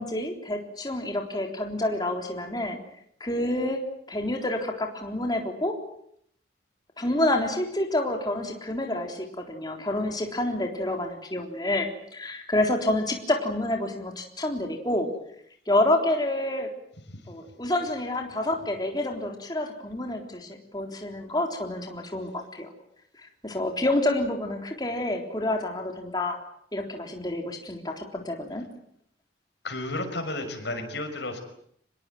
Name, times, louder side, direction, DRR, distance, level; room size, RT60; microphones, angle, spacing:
voice 1, 0.0-2.8 3.2-3.8 4.1-5.8 7.0-15.1 15.7-16.7 17.3-22.7 23.2-26.4 26.7-28.6, left 1 dB, 20° left, 3 dB, 3.7 m, -28 dB
voice 2, 29.6-31.4, left 2 dB, 65° left, 6 dB, 6.0 m, -32 dB
26.0 x 21.0 x 9.3 m, 0.69 s
head